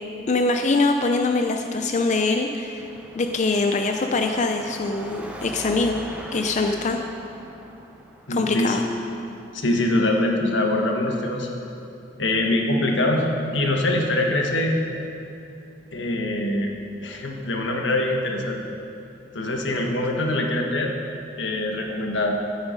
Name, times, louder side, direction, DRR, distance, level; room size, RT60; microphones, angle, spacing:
voice 1, 0.3-2.8 3.1-6.0 6.3-7.0 8.3-8.8, left 3 dB, 40° left, 4 dB, 0.5 m, -23 dB
Car passing by / Traffic noise roadway noise / Engine, 2.8-10.1, equal, 5° right, 0.7 m, -41 dB
voice 2, 8.3-8.8 9.5-11.5 12.2-13.2 13.5-14.8 15.9-16.8 17.0-18.6 19.3-20.9 21.4-22.3, left 1 dB, 85° left, 1 dB, 1.4 m, -23 dB
13.0 x 8.1 x 5.2 m, 2.8 s
head